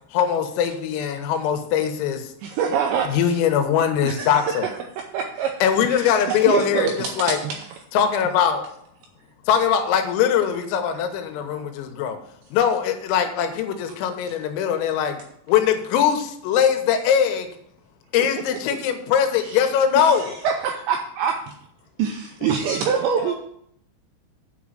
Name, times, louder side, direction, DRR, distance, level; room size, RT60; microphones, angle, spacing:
voice 1, 0.1-2.3 3.0-4.7 5.6-7.4 7.9-8.7 9.5-12.2 12.5-15.2 15.5-17.5 18.1-20.3, left 8 dB, 85° left, 6 dB, 3.7 m, -21 dB
voice 2, 2.4-3.4 4.0-4.6 5.1-5.5 5.8-7.7 19.4-19.6 20.0-21.5 22.0-23.3, right 7 dB, 85° right, 3 dB, 2.5 m, -25 dB
voice 3, 22.4-23.4, left 5 dB, 70° left, 2 dB, 3.2 m, -38 dB
9.3 x 5.2 x 7.3 m, 0.69 s
omnidirectional pair, 5.9 m